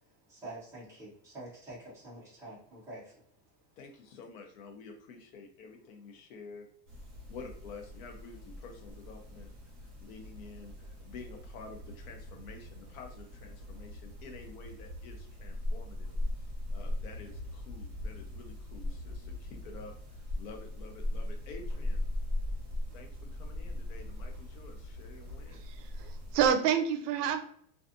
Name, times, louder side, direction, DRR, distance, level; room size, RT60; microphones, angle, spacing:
voice 1, 0.3-3.1, right 2 dB, 5° right, -9 dB, 0.4 m, -46 dB
voice 2, 3.8-6.7 7.3-9.5 9.8-22.0 22.9-25.6, left 4 dB, 60° left, 3 dB, 0.7 m, -50 dB
sound 1, 6.9-26.5, left 1 dB, 25° right, 1.1 m, -39 dB
voice 3, 25.6-27.4, right 8 dB, 75° right, 7 dB, 0.6 m, -28 dB
2.5 x 2.3 x 2.6 m, 0.64 s
supercardioid pair, 170°, 47 cm